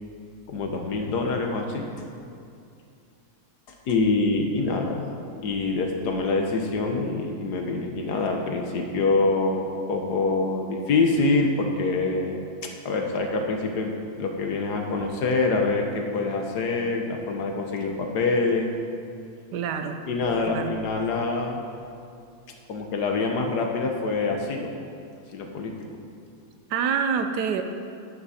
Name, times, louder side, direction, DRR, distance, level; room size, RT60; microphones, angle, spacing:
voice 1, 0.5-1.9 3.9-5.1 5.4-12.4 12.8-13.9 14.2-18.7 20.1-21.6 22.7-24.7 25.3-25.7, left 3 dB, 80° left, 2 dB, 1.6 m, -25 dB
voice 2, 19.5-20.0 20.5-20.7 26.7-27.6, right 6 dB, 85° right, 7 dB, 1.3 m, -26 dB
11.0 x 11.0 x 4.2 m, 2.5 s
omnidirectional pair, 1.7 m